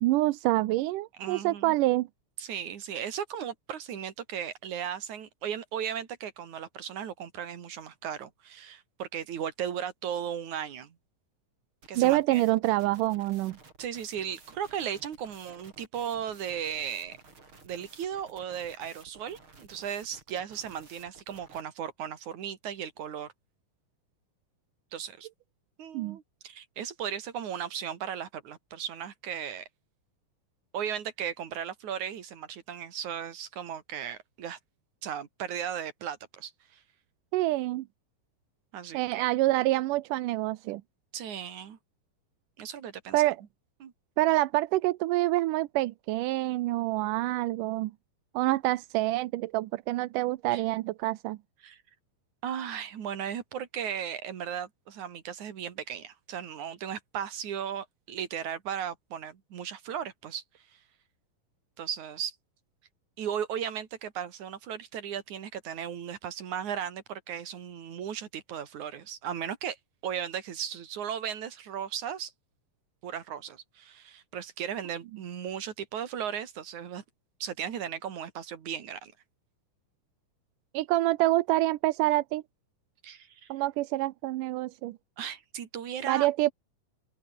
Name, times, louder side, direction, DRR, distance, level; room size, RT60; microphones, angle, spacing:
voice 1, 0.0-2.1 12.0-13.6 25.9-26.2 37.3-37.9 38.9-40.8 43.1-43.4 44.2-47.9 48.3-51.4 80.7-82.4 83.5-85.0 86.1-86.5, right 17 dB, 85° right, 2.3 m, -26 dB
voice 2, 1.2-1.8 2.4-11.0 11.9-12.4 13.8-17.2 17.6-23.3 24.9-25.3 25.8-29.7 30.7-34.6 35.0-36.8 38.7-39.3 41.1-41.8 42.6-43.2 43.8-43.9 50.5-50.6 51.6-51.8 52.4-60.8 61.8-62.4 63.2-69.8 70.0-72.3 73.0-77.0 77.4-79.1 83.0-83.5 85.2-86.3, right 9 dB, 65° right, 3.6 m, -36 dB
sound 1, 11.8-21.6, right 3 dB, 40° right, 5.6 m, -54 dB
open air
omnidirectional pair, 3.8 m